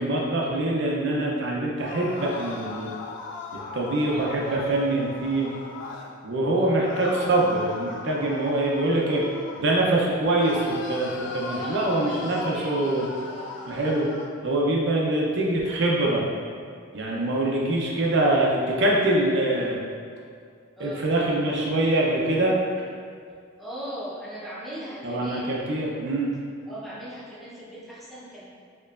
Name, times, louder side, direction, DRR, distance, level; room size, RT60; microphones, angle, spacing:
voice 1, 0.0-2.9 3.7-5.5 6.2-9.2 9.6-13.0 13.7-14.1 14.4-16.3 16.9-19.8 20.8-22.9 25.0-26.3, right 1 dB, 65° right, -3 dB, 0.6 m, -24 dB
sound 1, 1.8-6.1 6.8-10.0 10.4-14.3, left 4 dB, 65° left, 0.5 m, -38 dB
voice 2, 4.1-4.7 6.5-7.0 11.5-13.0 13.3-13.7 17.0-17.3 20.8-21.0 23.6-25.6 26.7-28.5, equal, ahead, -8 dB, 0.7 m, -39 dB
4.4 x 3.0 x 2.5 m, 2.2 s
head